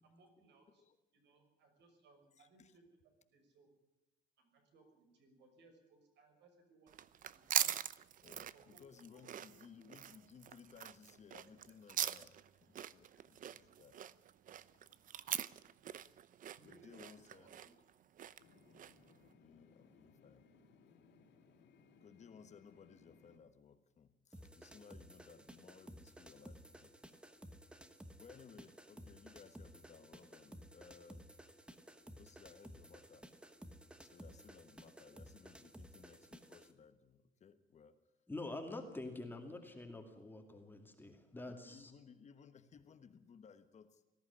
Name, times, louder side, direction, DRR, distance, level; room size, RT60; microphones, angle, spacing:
voice 1, 0.0-0.8 1.1-2.8 3.2-3.7 4.4-7.8 8.5-9.2 9.8-10.0 16.6-18.0, right 3 dB, 65° right, 4 dB, 6.1 m, -67 dB
voice 2, 2.4-2.7 8.2-14.0 14.7-15.0 16.6-17.5 19.1-20.5 22.0-27.0 28.2-31.3 32.1-33.3 34.0-38.0 41.5-44.0, left 6 dB, 35° left, 10 dB, 1.3 m, -60 dB
sound 1, 6.9-19.1, right 10 dB, 45° right, 0.7 m, -42 dB
sound 2, 18.4-23.4, left 4 dB, 65° left, 3.2 m, -66 dB
sound 3, 24.3-36.7, right 1 dB, 5° right, 1.3 m, -56 dB
voice 3, 38.3-41.9, left 2 dB, 10° left, 4 dB, 2.3 m, -46 dB
19.5 x 14.5 x 9.8 m, 0.99 s
cardioid pair, 155°, 20 cm